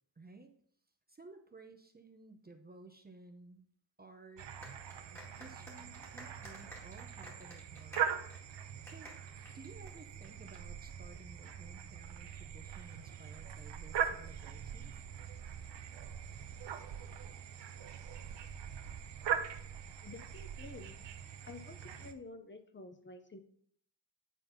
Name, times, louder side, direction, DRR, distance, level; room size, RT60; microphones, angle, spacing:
voice 1, 0.2-0.5 1.1-3.7 4.0-4.5 5.3-8.2 8.9-9.1 9.5-15.0, right 3 dB, 25° right, 6 dB, 0.5 m, -55 dB
sound 1, 4.4-22.1, right 8 dB, 75° right, 0.8 m, -42 dB
sound 2, 4.6-10.6, equal, 5° left, 2.0 m, -53 dB
voice 2, 20.0-21.1 21.4-23.4, left 3 dB, 25° left, 7 dB, 0.6 m, -50 dB
9.2 x 3.9 x 5.2 m, 0.63 s
wide cardioid pair, 175°, 43 cm